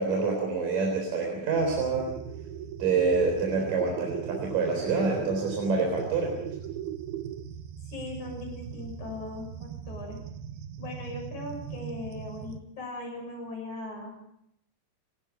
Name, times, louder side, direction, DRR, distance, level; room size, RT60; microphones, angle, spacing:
voice 1, 0.0-2.2 2.8-6.5, right 4 dB, 60° right, 0 dB, 5.4 m, -27 dB
sound 1, 1.6-12.6, right 9 dB, 85° right, 3.2 m, -39 dB
voice 2, 7.9-10.2 10.8-14.1, left 2 dB, 50° left, 2 dB, 8.2 m, -39 dB
28.5 x 18.5 x 5.1 m, 0.74 s
omnidirectional pair, 4.3 m